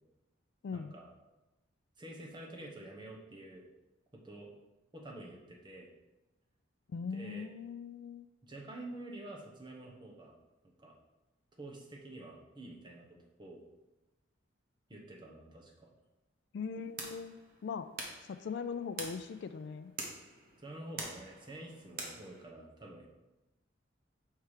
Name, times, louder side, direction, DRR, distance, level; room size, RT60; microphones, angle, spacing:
voice 1, 0.7-1.1 2.0-3.7 4.1-4.5 4.9-5.9 7.1-7.5 8.4-10.3 10.8-10.9 11.5-13.6 14.9-15.9 20.6-23.1, right 1 dB, 25° right, 0 dB, 1.1 m, -48 dB
voice 2, 6.9-8.3 16.5-17.9 18.3-19.9, left 5 dB, 60° left, 11 dB, 0.3 m, -40 dB
sound 1, 16.8-22.4, right 3 dB, 50° right, 1.1 m, -46 dB
5.6 x 4.7 x 4.9 m, 1.0 s
head